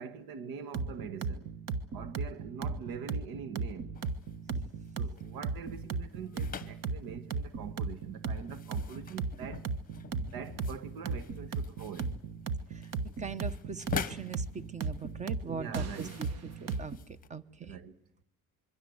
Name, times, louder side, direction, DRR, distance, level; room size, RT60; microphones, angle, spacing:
voice 1, 0.0-1.5 1.9-3.9 5.0-9.7 10.2-12.1 15.4-16.2 17.6-18.0, right 6 dB, 75° right, 1.6 m, -44 dB
sound 1, 0.7-17.0, right 4 dB, 45° right, 1.4 m, -36 dB
sound 2, 3.9-17.3, left 8 dB, 25° left, 1.2 m, -46 dB
voice 2, 13.2-16.3 16.6-17.8, right 5 dB, 20° right, 1.0 m, -41 dB
26.0 x 23.0 x 7.9 m
cardioid pair, 150°, 36 cm